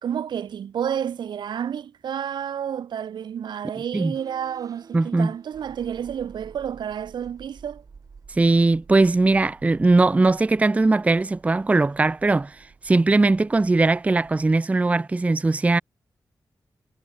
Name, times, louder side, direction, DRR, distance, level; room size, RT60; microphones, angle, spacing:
voice 1, 0.0-7.8, right 8 dB, 90° right, 0.9 m, -30 dB
sound 1, 4.1-14.6, right 5 dB, 50° right, 2.0 m, -50 dB
voice 2, 4.9-5.3 8.4-12.6 12.8-15.8, right 3 dB, 20° right, 0.4 m, -19 dB
cardioid pair, 75°, 8 cm